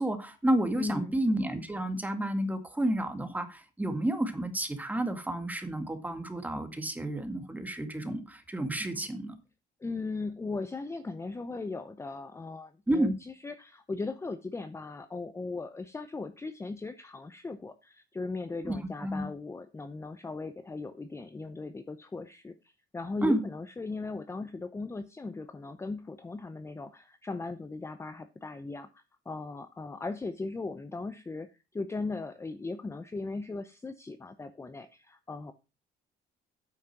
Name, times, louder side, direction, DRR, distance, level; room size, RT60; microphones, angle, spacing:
voice 1, 0.0-9.4 12.9-13.1 18.6-19.3 23.2-23.4, right 1 dB, 10° right, 7 dB, 2.0 m, -30 dB
voice 2, 0.8-1.2 9.8-35.5, left 3 dB, 15° left, 10 dB, 0.7 m, -38 dB
8.9 x 6.2 x 5.9 m, 0.29 s
cardioid pair, 110°, 17 cm